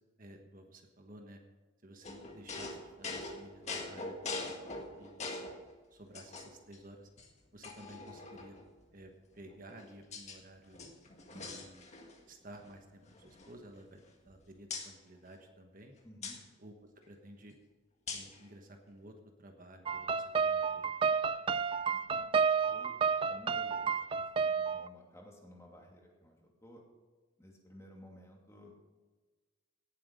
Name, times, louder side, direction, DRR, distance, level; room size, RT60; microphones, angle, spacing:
voice 1, 0.2-1.4 1.8-5.3 5.9-7.1 7.5-8.6 8.9-10.8 11.3-11.9 12.3-15.9 16.6-16.7 17.1-17.6 18.1-20.8, right 1 dB, 45° right, 4 dB, 1.3 m, -54 dB
sound 1, 2.0-5.6 6.1-6.8 7.2-7.3 7.6-8.7 9.4-10.4 10.7-12.2 12.5-12.7 13.0-14.3 14.7-14.9 16.2-16.4 18.1-18.4, left 3 dB, 35° left, 1.7 m, -43 dB
voice 2, 16.0-16.4 22.1-22.9 23.3-26.8 27.4-28.7, equal, 15° left, -1 dB, 2.5 m, -55 dB
sound 2, 19.9-24.9, right 6 dB, 25° right, 0.3 m, -31 dB
17.5 x 7.8 x 5.2 m, 1.3 s
head